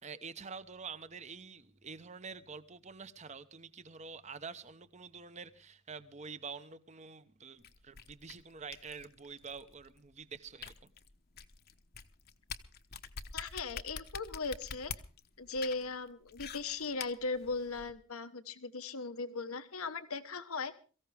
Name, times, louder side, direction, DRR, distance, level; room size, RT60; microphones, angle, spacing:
voice 1, 0.0-10.9, right 5 dB, 30° right, 0.9 m, -47 dB
sound 1, 7.6-17.9, left 6 dB, 45° left, 1.0 m, -46 dB
voice 2, 13.3-14.9 15.4-20.8, left 3 dB, 85° left, 1.2 m, -38 dB
23.0 x 15.0 x 3.5 m
head